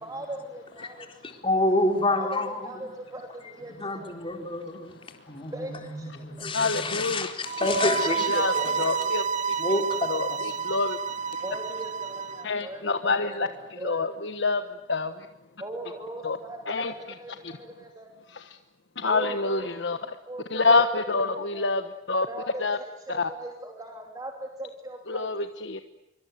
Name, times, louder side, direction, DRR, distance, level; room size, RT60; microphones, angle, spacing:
voice 1, 0.0-1.2 2.1-4.1 5.5-6.5 8.1-8.2 8.6-9.2 11.4-14.3 15.6-18.1 19.0-19.7 19.9-20.6 20.9-21.7 22.3-25.3, right 1 dB, 20° right, 3.1 m, -40 dB
voice 2, 1.2-2.7 3.4-5.0 5.3-9.1 9.6-10.4, left 2 dB, 30° left, 4.0 m, -28 dB
voice 3, 6.5-7.3 8.3-9.8 10.1-11.4 12.4-14.6 14.9-15.3 16.2-16.4 16.7-16.9 17.4-17.5 18.3-18.6 19.0-20.0 20.5-21.8 22.1-22.3 22.6-22.8 23.1-23.3 25.1-25.8, left 3 dB, 70° left, 1.3 m, -27 dB
sound 1, 7.4-12.4, right 6 dB, 40° right, 1.1 m, -29 dB
26.0 x 24.5 x 9.3 m
head